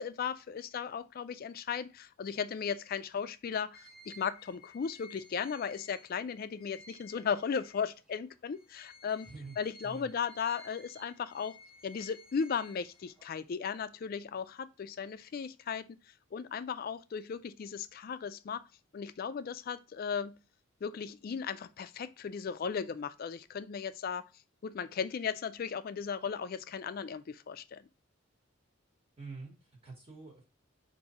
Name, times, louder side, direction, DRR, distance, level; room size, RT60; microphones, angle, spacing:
voice 1, 0.0-9.3 9.6-11.5 11.8-15.8 16.3-18.6 18.9-20.4 20.8-24.2 24.6-27.9, left 6 dB, 45° left, 0.3 m, -36 dB
sound 1, 3.7-8.1 8.5-13.4, left 2 dB, 5° right, 0.9 m, -56 dB
voice 2, 9.2-9.6 9.8-10.1 29.2-30.4, right 3 dB, 30° right, 1.0 m, -46 dB
4.8 x 2.6 x 4.0 m
head